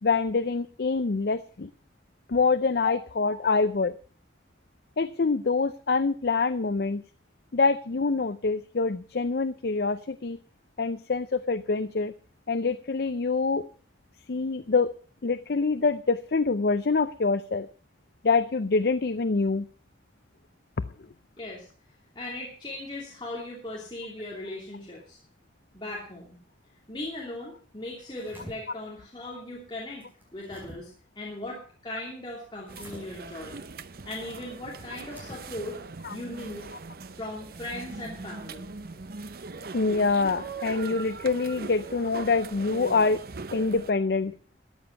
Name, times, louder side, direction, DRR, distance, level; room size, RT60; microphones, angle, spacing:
voice 1, 0.0-1.7 2.3-3.9 5.0-7.0 7.5-10.4 10.8-12.1 12.5-13.7 14.3-14.9 15.2-17.7 18.2-19.6 36.0-36.1 39.7-43.2 43.5-44.3, left 4 dB, 55° left, 13 dB, 0.5 m, -25 dB
voice 2, 21.4-21.7 22.1-25.2 25.7-26.4 26.9-30.1 30.3-30.9 31.2-33.6 34.0-35.8 36.1-36.7 37.2-38.7, left 1 dB, 25° left, -3 dB, 2.7 m, -38 dB
Closing a Book, 28.0-28.5 30.0-30.8 32.7-33.0 35.0-35.5, equal, 10° right, 5.0 m, -46 dB
sound 1, 32.7-43.9, right 4 dB, 50° right, 0.7 m, -40 dB
13.5 x 8.9 x 5.8 m, 0.41 s
head